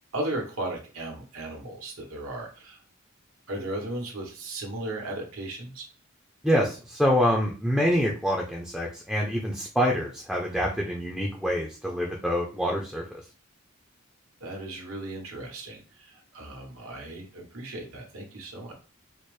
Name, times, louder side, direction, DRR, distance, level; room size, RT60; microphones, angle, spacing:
voice 1, 0.1-2.8 3.5-5.9 14.4-18.7, right 1 dB, 90° right, 1 dB, 1.1 m, -36 dB
voice 2, 6.4-13.2, equal, ahead, -1 dB, 0.4 m, -26 dB
4.3 x 2.0 x 3.1 m, 0.35 s
head